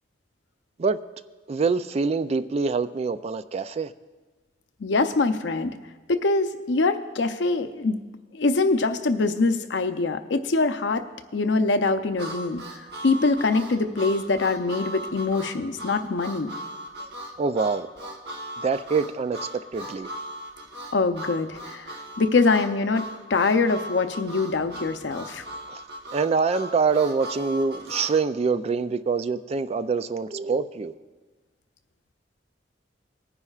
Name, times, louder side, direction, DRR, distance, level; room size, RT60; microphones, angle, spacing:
voice 1, 1.5-3.9 17.4-17.9 18.6-20.1 25.7-25.8 26.1-30.9, right 4 dB, 35° right, 13 dB, 0.3 m, -25 dB
voice 2, 4.8-5.7 6.1-8.0 8.3-11.0 11.3-16.5 20.9-25.4, left 3 dB, 70° left, 9 dB, 0.6 m, -24 dB
Harmonica, 12.2-28.2, right 1 dB, 65° right, 1.1 m, -38 dB
19.5 x 9.8 x 2.4 m, 1.4 s
head